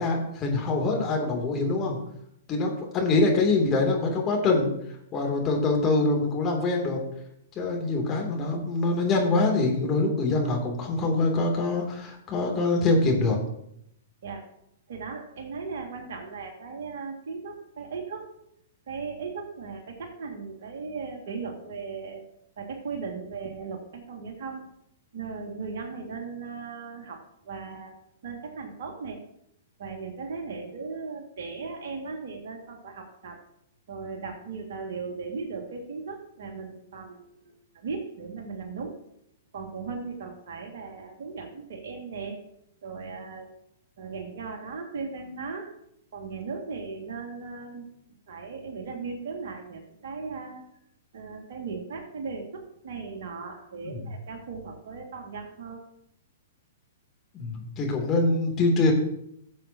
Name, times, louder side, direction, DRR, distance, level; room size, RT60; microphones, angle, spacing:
voice 1, 0.0-2.0 2.5-4.7 5.1-7.0 7.5-13.4 53.8-54.0 57.3-58.9, left 3 dB, 25° left, 0 dB, 2.8 m, -24 dB
voice 2, 14.9-18.3 18.9-22.2 22.6-24.6 25.1-27.2 27.4-29.2 29.8-33.4 33.9-39.0 39.5-42.4 42.8-43.5 44.0-45.7 46.1-47.8 48.3-50.6 51.1-55.8, right 4 dB, 60° right, 3 dB, 2.1 m, -37 dB
17.0 x 7.3 x 2.9 m, 0.75 s
figure-of-eight pair, 110°, 0 cm